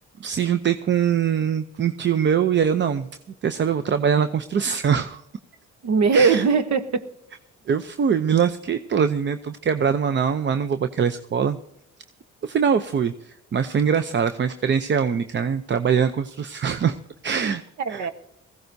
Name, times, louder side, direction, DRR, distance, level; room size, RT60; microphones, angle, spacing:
voice 1, 0.2-3.1 3.4-5.2 6.1-6.4 7.7-11.6 12.4-17.0 17.2-17.6 17.9-18.1, right 7 dB, 40° right, 10 dB, 0.6 m, -23 dB
voice 2, 5.8-7.0 17.8-18.1, right 5 dB, 65° right, 11 dB, 1.1 m, -20 dB
19.5 x 15.5 x 2.7 m, 0.83 s
cardioid pair, 90°, 30 cm